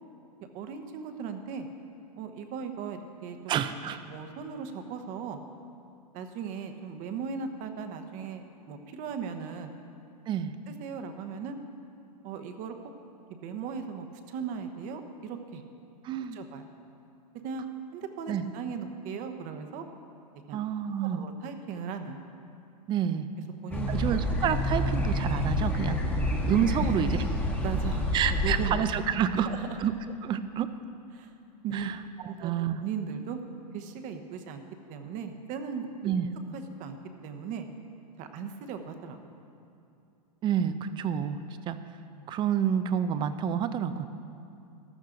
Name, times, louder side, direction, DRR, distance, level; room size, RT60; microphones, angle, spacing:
voice 1, 0.5-1.7 2.2-3.4 4.1-5.4 6.1-9.7 10.7-11.6 12.2-12.9 13.3-15.6 16.3-16.7 17.4-17.6 17.9-19.8 20.5-20.6 21.1-22.2 23.6-24.0 26.8-26.9 27.6-29.1 29.4-29.8 31.1-31.3 31.6-31.9 32.3-32.5 32.8-33.4 33.7-34.6 34.9-36.2 36.5-37.0 37.2-37.7 38.2-39.2, right 6 dB, 40° right, 7 dB, 1.0 m, -37 dB
voice 2, 3.5-4.0 10.3-10.5 16.0-16.4 18.3-18.4 20.5-21.2 22.9-23.3 23.9-26.0 26.5-27.2 28.1-29.5 29.8-29.9 30.2-30.7 31.7-32.0 32.2-32.8 36.0-36.3 40.4-41.4 41.7-41.8 42.3-44.1, right 9 dB, 20° right, 11 dB, 0.5 m, -28 dB
sound 1, 23.7-28.7, left 1 dB, 10° left, 1.2 m, -28 dB
14.5 x 11.5 x 3.9 m, 2.6 s
hypercardioid pair, 130°, 21 cm